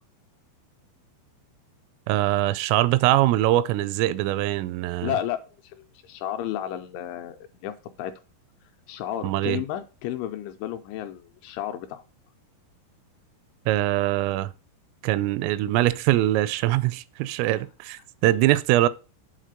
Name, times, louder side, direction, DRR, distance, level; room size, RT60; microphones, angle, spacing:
voice 1, 2.1-5.2 9.2-9.6 13.7-14.5 15.0-18.9, right 15 dB, 85° right, 3.2 m, -23 dB
voice 2, 5.0-8.1 8.9-12.0, left 11 dB, 80° left, 2.8 m, -32 dB
8.3 x 4.0 x 6.5 m
omnidirectional pair, 5.8 m